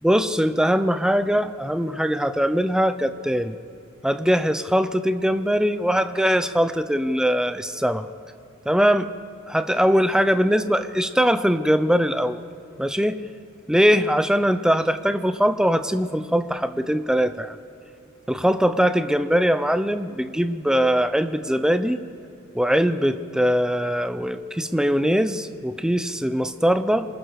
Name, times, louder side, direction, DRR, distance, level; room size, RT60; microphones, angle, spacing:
voice 1, 0.0-3.6 4.0-8.1 8.7-9.1 9.5-12.4 12.8-13.2 13.7-17.6 18.3-22.0 22.5-27.1, equal, 5° right, 11 dB, 0.7 m, -21 dB
27.0 x 20.5 x 4.8 m, 2.8 s
head